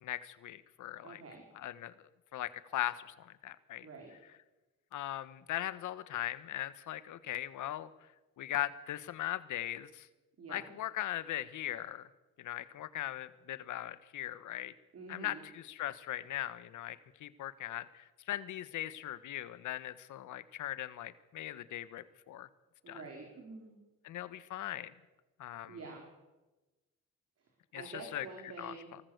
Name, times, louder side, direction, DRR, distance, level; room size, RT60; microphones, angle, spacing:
voice 1, 0.0-1.2 1.5-1.9 2.3-3.9 4.9-7.9 8.4-10.1 10.5-12.0 12.4-14.7 15.1-22.5 22.9-23.0 24.0-24.9 25.4-25.8 27.7-28.3 28.6-28.7, left 13 dB, 80° left, 14 dB, 1.5 m, -39 dB
voice 2, 1.0-1.4 3.8-4.1 10.4-10.7 14.9-15.4 22.8-23.8 25.7-26.1 27.7-28.9, right 3 dB, 50° right, 1 dB, 5.1 m, -47 dB
24.5 x 19.5 x 8.2 m, 1.1 s
cardioid pair, 90°, 30 cm